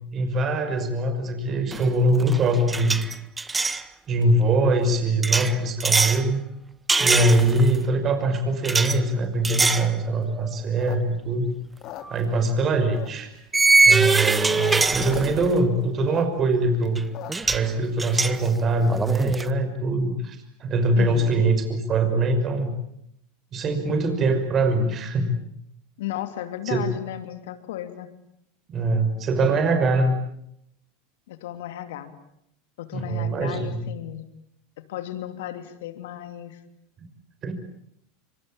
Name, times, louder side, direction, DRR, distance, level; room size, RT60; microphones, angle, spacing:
voice 1, 0.1-3.0 4.1-6.4 7.0-11.5 12.1-13.3 13.9-17.1 17.5-22.7 23.5-25.4 26.7-26.8 28.7-30.2 32.9-33.8 37.4-37.5, right 2 dB, 35° right, 8 dB, 5.8 m, -23 dB
sound 1, 1.7-1.9 2.2-3.8 5.2-6.2 6.9-7.8 8.6-9.0 9.4-9.9 10.4-10.5 12.0-12.2 13.5-15.6 17.0-17.1 17.3-17.7 18.0-19.5, right 3 dB, 15° right, 1.7 m, -22 dB
sound 2, 9.7-11.4 11.7-12.6 12.9-13.4 13.8-14.2 14.4-14.5 14.7-15.2 15.6-17.6, left 14 dB, 50° left, 3.6 m, -40 dB
voice 2, 14.4-14.8 21.0-21.4 26.0-28.1 31.3-32.1 32.8-34.3 34.8-36.6, left 12 dB, 70° left, 10 dB, 2.9 m, -34 dB
26.0 x 25.5 x 8.9 m, 0.75 s
hypercardioid pair, 95°, 0 cm